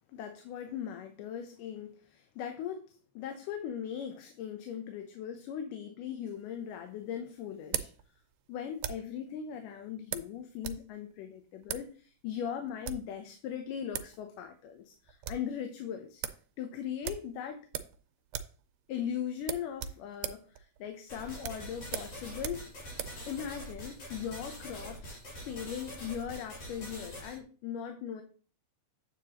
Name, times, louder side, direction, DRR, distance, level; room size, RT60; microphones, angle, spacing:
voice 1, 0.1-2.8 3.2-7.9 8.5-16.2 16.6-17.6 18.9-22.7 23.3-28.2, left 9 dB, 75° left, 6 dB, 2.3 m, -39 dB
sound 1, 6.3-9.2 10.1-10.9 11.1-11.2 11.6-11.9 12.6-13.1 13.7-13.8 13.9-14.2 14.5-14.6 14.9-15.5 15.8-15.9 16.2-16.4 17.0-18.0 18.3-18.6 18.9-19.0 19.4-23.2, right 10 dB, 85° right, 2.3 m, -39 dB
sound 2, 21.1-27.4, equal, 55° left, 4.4 m, -45 dB
8.8 x 8.1 x 2.9 m, 0.41 s
omnidirectional pair, 3.9 m